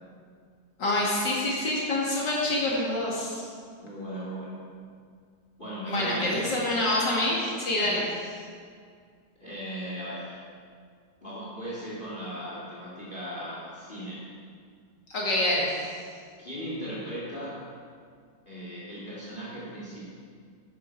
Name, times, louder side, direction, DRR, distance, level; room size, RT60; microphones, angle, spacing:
voice 1, 0.8-3.5 5.9-8.0 15.1-15.7, left 1 dB, 70° left, -4 dB, 2.7 m, -26 dB
voice 2, 3.8-4.6 5.6-6.4 7.7-8.0 9.4-10.4 11.2-14.3 16.4-17.6 18.5-20.1, equal, 25° left, -6 dB, 2.5 m, -37 dB
12.5 x 9.6 x 4.6 m, 2.1 s
omnidirectional pair, 2.0 m